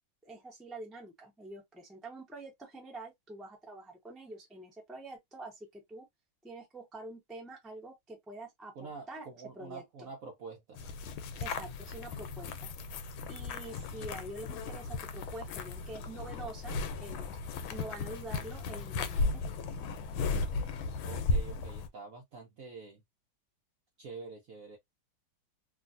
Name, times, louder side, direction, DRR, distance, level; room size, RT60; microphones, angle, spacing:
voice 1, 0.2-6.0 6.4-9.2 9.5-10.1 11.4-12.7 13.3-17.4 17.7-19.4, right 2 dB, ahead, 0.4 m, -46 dB
voice 2, 8.8-10.8 21.0-23.0 24.0-24.8, right 4 dB, 65° right, 0.8 m, -46 dB
sound 1, 10.8-21.9, left 3 dB, 90° left, 1.4 m, -36 dB
3.2 x 2.5 x 2.5 m
omnidirectional pair, 2.2 m